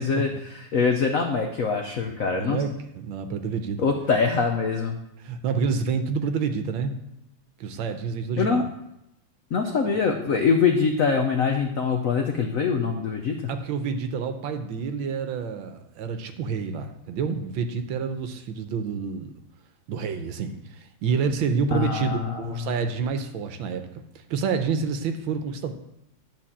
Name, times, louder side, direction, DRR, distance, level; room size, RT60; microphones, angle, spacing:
voice 1, 0.0-2.6 3.8-5.0 8.4-8.6 9.5-13.5 21.7-22.6, left 5 dB, 75° left, 4 dB, 0.7 m, -24 dB
voice 2, 2.3-3.9 5.2-6.9 7.6-8.7 10.1-10.2 13.5-19.3 19.9-23.9 24.1-25.7, right 5 dB, 70° right, 7 dB, 1.4 m, -28 dB
10.5 x 4.2 x 7.2 m, 0.84 s
omnidirectional pair, 2.4 m